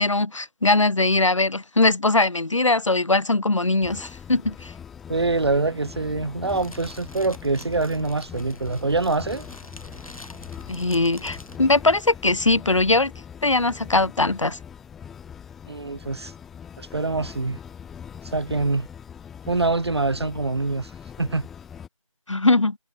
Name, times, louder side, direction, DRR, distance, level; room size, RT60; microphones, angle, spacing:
voice 1, 0.0-4.7 10.7-13.1 13.4-14.6 22.3-22.8, left 2 dB, 60° left, 2.4 m, -21 dB
sound 1, 3.8-21.9, left 8 dB, ahead, 0.9 m, -42 dB
voice 2, 5.1-9.4 15.7-16.3 16.8-17.6 18.2-18.9 19.5-20.9 21.2-21.5, right 3 dB, 50° right, 1.7 m, -25 dB
Fire, 6.4-11.6, left 1 dB, 90° left, 4.6 m, -45 dB
figure-of-eight pair, 170°, 18 cm